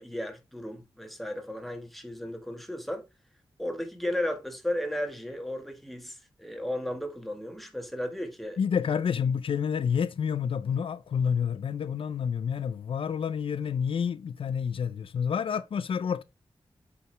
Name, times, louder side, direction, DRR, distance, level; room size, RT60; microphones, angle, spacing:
voice 1, 0.0-3.0 3.6-8.6, left 1 dB, ahead, 1.4 m, -34 dB
voice 2, 8.6-16.2, left 7 dB, 70° left, 0.4 m, -29 dB
8.0 x 4.8 x 3.3 m
wide cardioid pair, 135°, 9 cm